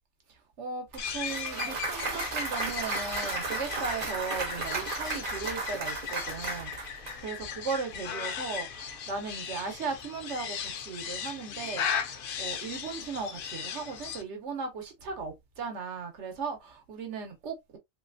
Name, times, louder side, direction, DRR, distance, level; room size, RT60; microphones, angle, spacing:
Clapping / Cheering / Applause, 0.9-7.2, right 3 dB, 50° right, 0.9 m, -34 dB
sound 1, 1.0-14.2, left 7 dB, 60° left, 0.6 m, -37 dB
voice 1, 1.1-17.8, right 5 dB, 80° right, 1.3 m, -37 dB
3.2 x 2.9 x 2.4 m
omnidirectional pair, 1.2 m